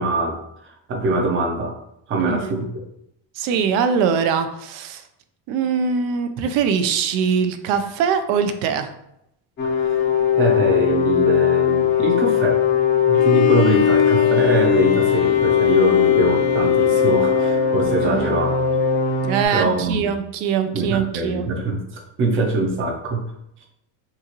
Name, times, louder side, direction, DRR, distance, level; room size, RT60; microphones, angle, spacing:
voice 1, 0.0-1.7 2.1-2.8 9.8-10.0 10.3-12.6 13.1-18.5 19.5-20.2 20.7-23.3, right 2 dB, 25° right, 1 dB, 0.6 m, -23 dB
voice 2, 2.2-2.5 3.4-5.0 5.5-8.9 18.0-18.4 19.2-21.5, right 6 dB, 65° right, 8 dB, 0.6 m, -22 dB
sound 1, 9.6-19.5, left 8 dB, 25° left, 0.6 m, -19 dB
Bowed string instrument, 13.1-18.2, left 5 dB, 75° left, 0.7 m, -26 dB
5.7 x 2.4 x 2.9 m, 0.79 s
cardioid pair, 180°, 46 cm